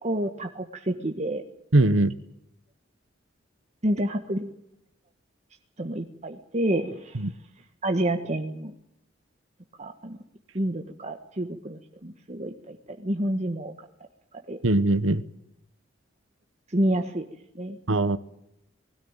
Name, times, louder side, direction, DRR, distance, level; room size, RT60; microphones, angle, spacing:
voice 1, 0.0-1.4 3.8-4.5 5.8-7.2 7.8-8.7 9.8-10.2 10.5-13.7 14.5-14.6 16.7-17.2 17.5-17.8, right 1 dB, 35° right, 4 dB, 1.4 m, -28 dB
voice 2, 1.7-2.1 7.1-7.3 14.6-15.2 17.9-18.2, right 2 dB, 90° right, 16 dB, 1.1 m, -21 dB
20.5 x 16.5 x 9.0 m, 0.80 s
head